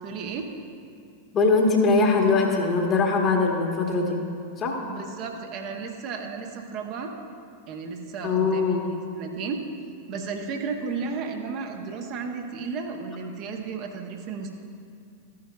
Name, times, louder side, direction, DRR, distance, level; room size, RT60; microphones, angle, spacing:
voice 1, 0.0-0.5 4.9-7.1 7.7-9.6 10.1-14.6, right 5 dB, 40° right, 3 dB, 0.8 m, -33 dB
voice 2, 1.3-4.2 4.6-4.8 8.2-8.8, left 3 dB, 30° left, 1 dB, 1.3 m, -21 dB
13.5 x 9.5 x 2.3 m, 2.3 s
figure-of-eight pair, 90°, 0 cm